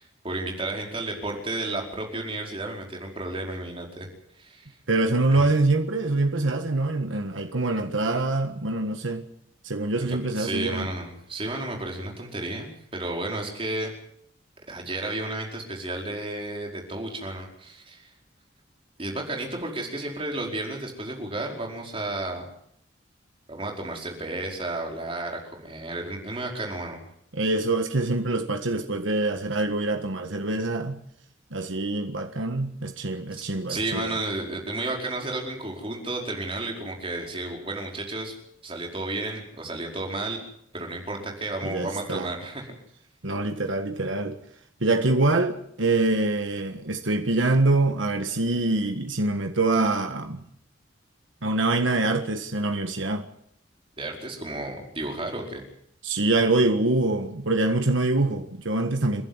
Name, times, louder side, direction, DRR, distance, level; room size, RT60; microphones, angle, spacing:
voice 1, 0.0-4.1 4.4-4.7 5.3-5.5 10.1-13.9 14.7-18.1 19.0-22.5 23.5-27.0 33.3-38.3 38.6-40.4 40.7-42.7 54.0-55.6, right 2 dB, 30° right, 4.9 m, -32 dB
voice 2, 4.9-9.2 9.6-10.9 27.3-31.0 31.5-34.1 41.6-42.3 43.2-44.4 44.8-50.4 51.4-53.3 56.0-59.2, right 2 dB, 80° right, 1.6 m, -25 dB
30.0 x 11.5 x 9.7 m
head